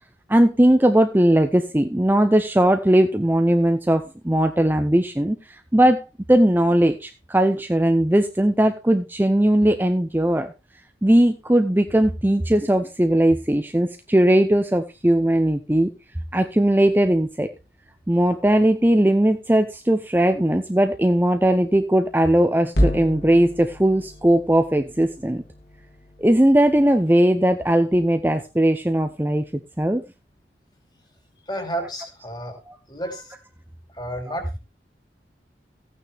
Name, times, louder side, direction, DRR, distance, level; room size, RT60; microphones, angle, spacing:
voice 1, 0.3-6.0 6.3-10.5 11.0-15.9 16.3-17.5 18.1-25.4 26.2-30.0 34.3-34.4, right 1 dB, 10° right, 7 dB, 0.6 m, -19 dB
sound 1, 22.7-27.1, equal, 70° left, 3.0 m, -29 dB
voice 2, 31.4-32.6 32.9-33.3 33.9-34.6, right 1 dB, 25° left, 5 dB, 2.7 m, -31 dB
14.5 x 9.1 x 3.4 m, 0.27 s
head